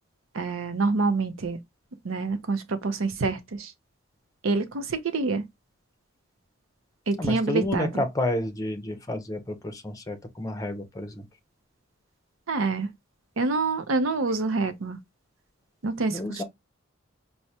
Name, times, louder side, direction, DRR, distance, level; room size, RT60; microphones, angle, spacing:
voice 1, 0.3-1.6 2.0-3.7 4.4-5.4 7.1-8.0 12.5-12.9 13.4-15.0 15.8-16.2, right 3 dB, 75° right, 0.6 m, -26 dB
voice 2, 7.2-11.3 16.1-16.4, left 1 dB, 15° left, 0.6 m, -30 dB
4.6 x 2.1 x 2.7 m
head